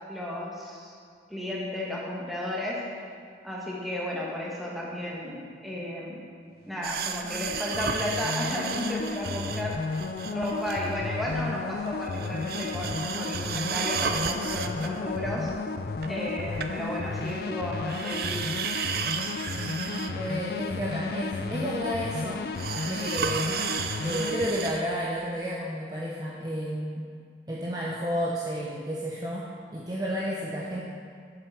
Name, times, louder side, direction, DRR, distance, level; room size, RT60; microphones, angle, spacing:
voice 1, 0.1-0.9 1.3-3.0 3.4-6.3 6.7-10.0 10.3-15.5 16.1-18.6, left 1 dB, ahead, -5 dB, 1.6 m, -33 dB
sound 1, 6.7-24.5, left 4 dB, 55° left, 0.4 m, -34 dB
sound 2, 6.8-11.0 11.3-11.5 11.8-17.5 17.9-20.3 20.6-20.7 21.5-21.6 22.5-24.8 25.2-25.3, right 6 dB, 55° right, 0.5 m, -34 dB
voice 2, 19.5-22.5 22.9-23.6 24.0-27.1 27.5-30.8, equal, 20° right, -4 dB, 0.7 m, -31 dB
7.8 x 7.6 x 6.1 m, 2.2 s
head